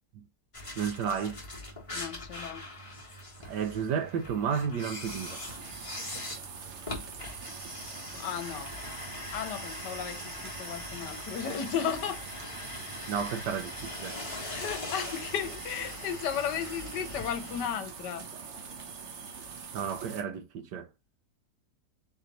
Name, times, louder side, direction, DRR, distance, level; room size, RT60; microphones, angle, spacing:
sound 1, 0.5-17.7, left 2 dB, 20° left, 1.3 m, -42 dB
voice 1, 0.8-1.4 3.4-5.4 13.1-14.2 19.7-20.9, right 7 dB, 75° right, 1.3 m, -32 dB
voice 2, 1.9-2.6 8.2-8.7 9.3-10.2 10.6-12.2 14.4-18.2, left 8 dB, 75° left, 1.4 m, -34 dB
sound 2, 5.1-20.2, right 6 dB, 55° right, 0.8 m, -44 dB
4.0 x 3.1 x 3.9 m
omnidirectional pair, 1.9 m